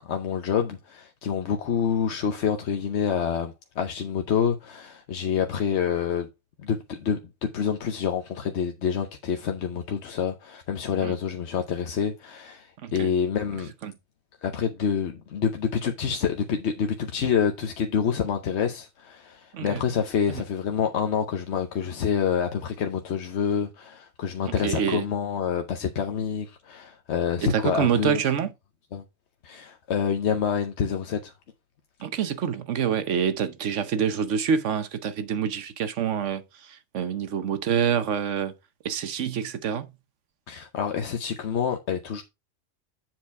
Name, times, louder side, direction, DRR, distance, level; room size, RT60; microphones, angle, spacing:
voice 1, 0.0-6.3 6.6-13.7 14.4-28.2 28.9-29.0 29.4-31.3 40.5-42.2, left 7 dB, 60° left, 1.0 m, -27 dB
voice 2, 24.4-25.0 27.4-28.5 32.0-38.5 38.8-39.9, right 7 dB, 65° right, 1.1 m, -27 dB
7.7 x 4.4 x 4.6 m
omnidirectional pair, 1.4 m